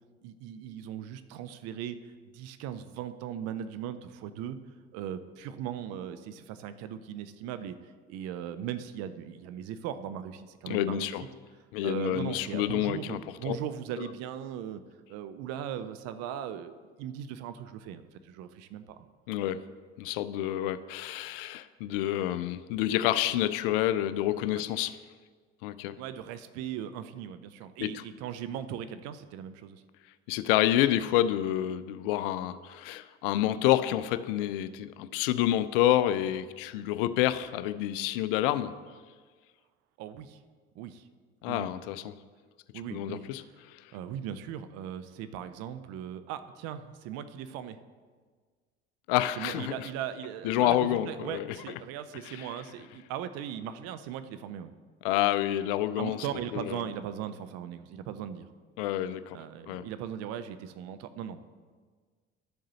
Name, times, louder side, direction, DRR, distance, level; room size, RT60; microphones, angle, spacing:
voice 1, 0.2-2.0 2.3-4.6 4.9-7.8 8.1-11.1 11.8-14.8 15.1-19.1 26.0-29.8 40.0-40.4 40.8-41.1 41.5-41.7 42.7-43.2 43.9-47.8 49.4-54.7 56.0-58.5 59.3-61.5, right 9 dB, 50° right, 11 dB, 0.6 m, -38 dB
voice 2, 10.7-11.2 11.7-13.2 13.4-13.6 14.0-14.1 19.3-19.6 20.0-25.0 25.6-26.0 27.8-28.0 30.3-38.7 41.4-42.1 42.9-43.4 43.7-43.8 49.1-49.9 50.4-51.6 52.2-52.5 55.0-56.3 56.5-56.8 58.8-59.4 59.7-59.9, left 13 dB, 60° left, 14 dB, 0.4 m, -28 dB
12.0 x 7.2 x 2.9 m, 1.5 s
figure-of-eight pair, 55°, 31 cm